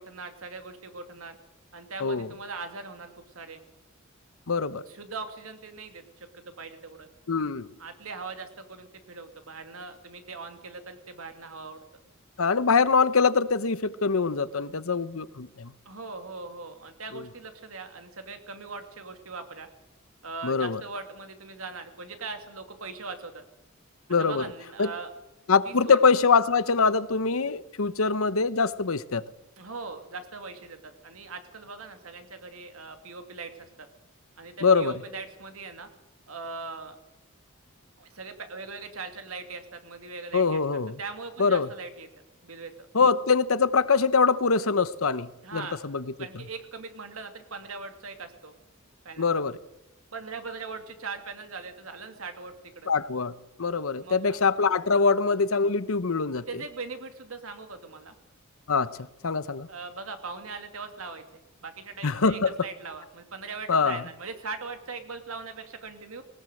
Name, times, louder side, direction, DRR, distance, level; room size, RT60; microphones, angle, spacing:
voice 1, 0.0-1.4 1.7-3.6 4.9-7.1 7.8-11.8 15.9-19.7 20.2-23.4 24.2-25.1 25.7-26.0 29.6-33.7 34.4-35.9 36.3-37.0 38.0-40.6 41.0-42.1 42.4-42.7 45.4-45.8 46.2-48.5 49.0-49.3 50.1-52.9 54.0-54.4 56.5-58.1 59.7-66.2, right 4 dB, 90° right, 2.5 m, -40 dB
voice 2, 2.0-2.3 4.5-4.8 7.3-7.7 12.4-15.7 17.1-17.2 20.4-20.8 24.1-24.4 24.8-24.9 25.5-29.2 34.6-35.0 40.3-41.0 41.4-41.7 42.9-46.0 49.2-49.6 52.9-53.3 53.6-56.4 58.7-59.0 59.2-59.7 62.0-62.5 63.7-64.0, left 5 dB, 80° left, 0.9 m, -23 dB
20.0 x 19.0 x 7.8 m
head